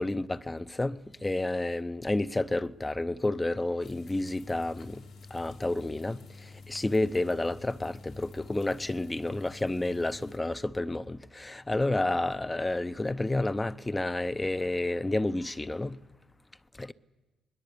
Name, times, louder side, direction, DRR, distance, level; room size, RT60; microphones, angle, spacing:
voice 1, 0.0-5.0 5.3-6.2 6.7-16.0 16.8-16.9, left 2 dB, 15° left, 0.6 m, -30 dB
sound 1, 3.8-10.4, left 3 dB, 85° left, 3.6 m, -49 dB
22.5 x 20.5 x 6.9 m
cardioid pair, 90°, 0 cm